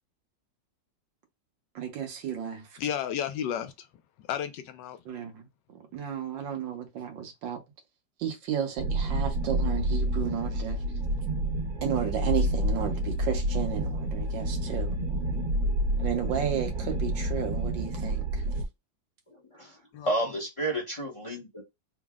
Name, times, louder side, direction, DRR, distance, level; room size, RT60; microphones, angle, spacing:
voice 1, 1.8-2.7 5.1-5.5 5.9-7.6 8.2-10.8 11.8-15.0 16.0-18.2, right 8 dB, 85° right, 1.7 m, -33 dB
voice 2, 2.8-3.9 4.2-5.0 19.9-20.4, left 9 dB, 80° left, 1.2 m, -33 dB
sound 1, 8.8-18.7, right 1 dB, 60° right, 1.5 m, -29 dB
voice 3, 20.1-21.6, right 1 dB, 25° left, 0.7 m, -30 dB
3.8 x 2.0 x 3.5 m
omnidirectional pair, 2.0 m